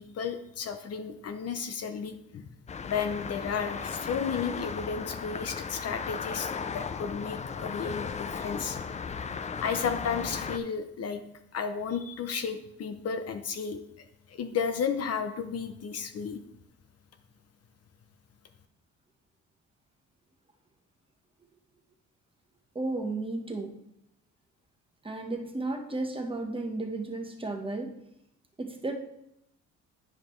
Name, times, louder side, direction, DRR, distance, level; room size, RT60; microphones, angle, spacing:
voice 1, 0.0-2.5 2.8-8.8 9.6-11.2 11.5-13.8 14.3-16.4, left 6 dB, 55° left, 8 dB, 0.7 m, -33 dB
sound 1, 2.7-10.6, left 5 dB, 25° left, 0.4 m, -36 dB
voice 2, 22.7-23.8 25.0-28.0 28.6-28.9, right 2 dB, 15° right, 4 dB, 1.1 m, -33 dB
9.6 x 5.1 x 3.2 m, 0.79 s
cardioid pair, 90°, 30 cm